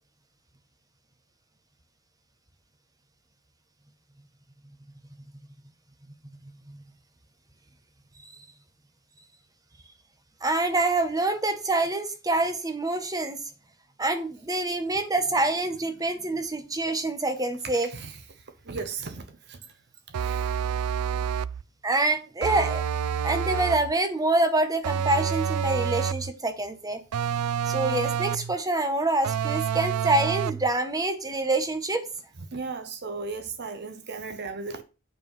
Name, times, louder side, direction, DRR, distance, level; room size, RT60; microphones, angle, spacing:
voice 1, 10.4-13.4 14.0-17.9 21.8-22.8 23.2-27.0 27.7-32.1, right 2 dB, 15° right, 1.2 m, -26 dB
voice 2, 17.6-19.8 20.1-20.8 32.4-34.8, right 4 dB, 50° right, 0.9 m, -37 dB
sound 1, 20.1-21.6 22.4-23.9 24.8-26.3 27.1-28.6 29.2-30.7, right 7 dB, 85° right, 0.4 m, -28 dB
8.2 x 4.8 x 5.4 m
head